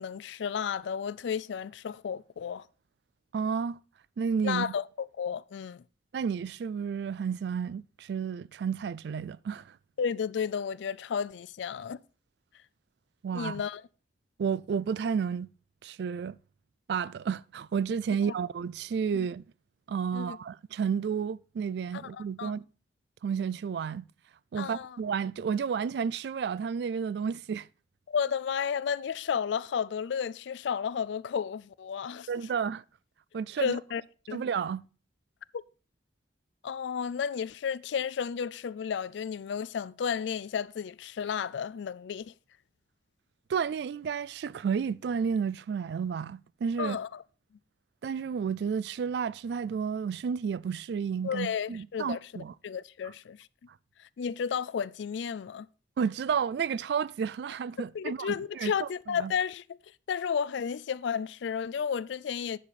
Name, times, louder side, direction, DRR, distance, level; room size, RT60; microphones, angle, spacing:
voice 1, 0.0-2.7 4.4-5.8 10.0-12.0 13.3-13.8 19.1-19.3 20.1-20.4 21.9-22.5 24.6-25.0 28.1-32.3 33.6-34.0 34.3-34.4 35.5-35.6 36.6-42.3 46.8-47.2 51.2-53.5 54.0-55.7 57.9-59.8 60.1-62.6, left 7 dB, 80° left, 0.4 m, -32 dB
voice 2, 3.3-3.8 4.2-4.7 6.1-9.7 13.2-13.6 14.4-15.5 15.8-16.4 16.9-19.4 19.9-22.6 23.2-24.1 24.5-27.7 32.3-32.8 33.3-33.8 34.3-34.8 43.5-47.0 48.0-52.5 56.0-59.3, right 6 dB, 65° right, 0.3 m, -31 dB
10.0 x 6.5 x 4.1 m
head